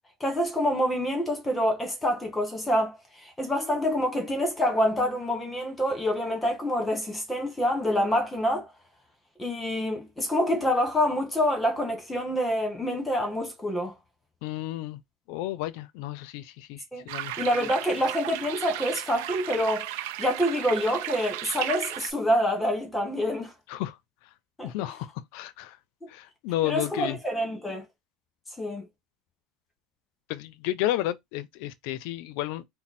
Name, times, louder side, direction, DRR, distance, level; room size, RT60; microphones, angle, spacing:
voice 1, 0.2-2.9 3.2-8.7 9.4-13.9 16.9-17.0 17.4-19.9 20.2-23.5 24.6-24.7 26.6-27.8 28.6-28.8, equal, 15° left, 1.2 m, -26 dB
voice 2, 14.4-15.0 15.3-17.4 23.7-24.0 24.6-25.1 25.3-25.8 26.1-27.2 30.3-32.7, left 14 dB, 70° left, 0.4 m, -32 dB
sound 1, 17.1-22.1, right 13 dB, 80° right, 0.5 m, -35 dB
4.1 x 2.0 x 4.1 m
supercardioid pair, 130°, 0 cm